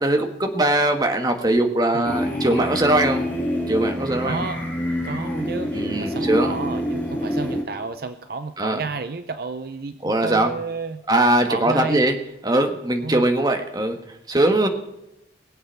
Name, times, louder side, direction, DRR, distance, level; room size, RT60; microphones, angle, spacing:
voice 1, 0.0-3.2 3.7-4.5 5.7-6.5 8.6-8.8 10.0-10.5 11.1-12.2 12.4-14.0 14.3-14.7, right 1 dB, 20° right, 5 dB, 1.5 m, -21 dB
sound 1, 2.0-7.6, equal, 10° left, 2.8 m, -26 dB
voice 2, 4.2-4.6 5.0-11.0 11.5-12.0 13.0-13.2, right 3 dB, 55° right, 10 dB, 0.6 m, -31 dB
21.0 x 8.0 x 5.7 m, 0.89 s
head